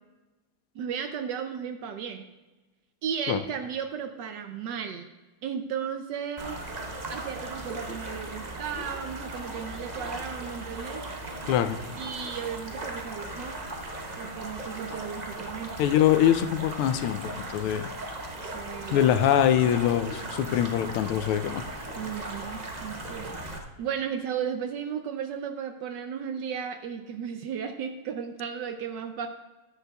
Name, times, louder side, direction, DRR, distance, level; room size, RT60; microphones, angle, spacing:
voice 1, 0.7-2.2 3.0-5.1 5.4-6.6 7.1-11.0 12.0-13.6 14.2-15.7 18.4-19.0 22.0-29.3, right 7 dB, 75° right, 7 dB, 1.0 m, -35 dB
sound 1, 6.4-23.6, right 1 dB, 55° right, 0.4 m, -38 dB
voice 2, 11.5-11.8 15.8-17.9 18.9-21.6, left 10 dB, 85° left, 9 dB, 1.5 m, -23 dB
13.0 x 9.6 x 2.3 m, 1.2 s
omnidirectional pair, 2.4 m